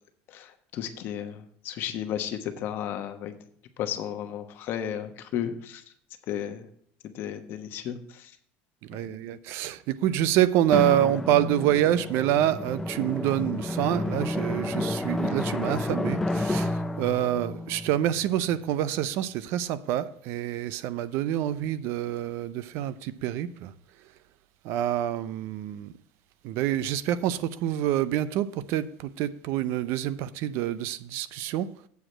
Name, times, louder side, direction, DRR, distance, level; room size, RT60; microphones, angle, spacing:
voice 1, 0.7-1.4 1.6-3.3 3.8-5.8 6.3-6.6 7.1-8.0 9.0-9.2, left 10 dB, 45° left, 1.1 m, -33 dB
voice 2, 8.9-16.7 17.0-23.7 24.6-25.9 26.4-31.7, right 12 dB, 55° right, 0.5 m, -27 dB
Drum, 10.7-19.0, left 1 dB, 5° left, 0.5 m, -31 dB
8.1 x 5.0 x 7.4 m
cardioid pair, 155°, 5 cm